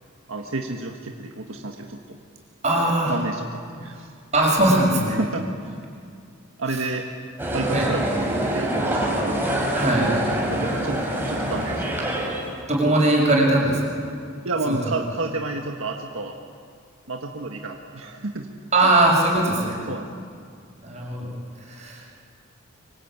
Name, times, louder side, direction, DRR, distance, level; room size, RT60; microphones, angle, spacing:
voice 1, 0.3-2.2 3.0-4.1 5.2-5.8 6.6-7.1 7.5-9.3 10.5-12.2 14.4-16.4 17.1-18.5 18.8-19.1 19.9-20.1, right 2 dB, 85° right, 1 dB, 1.7 m, -30 dB
voice 2, 2.6-3.1 4.3-5.2 7.7-7.9 9.7-10.1 12.7-14.0 14.7-14.8 18.7-19.8 20.8-21.3 21.7-22.0, right 1 dB, 35° right, -2 dB, 6.5 m, -20 dB
sound 1, 7.4-12.6, right 1 dB, 10° right, 5.2 m, -25 dB
25.5 x 24.5 x 9.0 m, 2.3 s
head